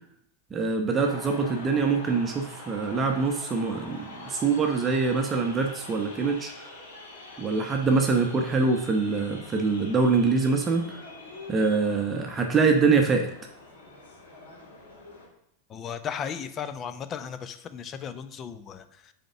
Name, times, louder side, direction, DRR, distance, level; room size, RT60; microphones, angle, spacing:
voice 1, 0.5-6.7 7.4-11.1 11.5-13.3, right 4 dB, 25° right, 3 dB, 0.9 m, -24 dB
sound 1, 1.0-15.2, left 2 dB, 75° left, 2.8 m, -45 dB
voice 2, 15.7-19.1, left 7 dB, 35° left, 11 dB, 0.6 m, -36 dB
5.2 x 4.4 x 6.2 m, 0.76 s
hypercardioid pair, 95°, 0 cm